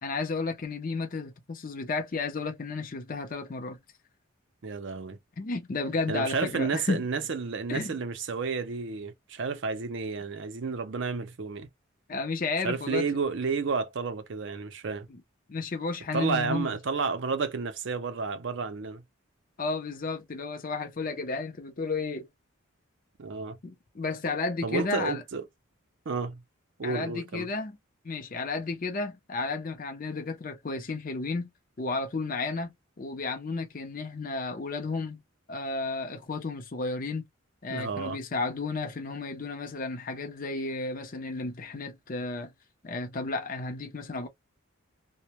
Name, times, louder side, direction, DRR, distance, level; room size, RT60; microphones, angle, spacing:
voice 1, 0.0-3.8 5.4-7.0 7.7-7.9 12.1-13.0 15.1-15.2 15.5-16.8 19.6-22.3 23.6-25.2 26.8-27.8 28.0-31.5 31.8-32.7 33.0-35.2 35.5-37.2 37.6-42.5 42.8-44.3, left 3 dB, 40° left, 0.5 m, -32 dB
voice 2, 4.6-5.2 6.1-11.7 12.6-15.1 16.1-19.0 23.2-23.6 24.6-25.5 26.1-26.4 26.8-27.5 37.7-38.2, right 4 dB, 55° right, 0.5 m, -31 dB
2.1 x 2.1 x 2.8 m
head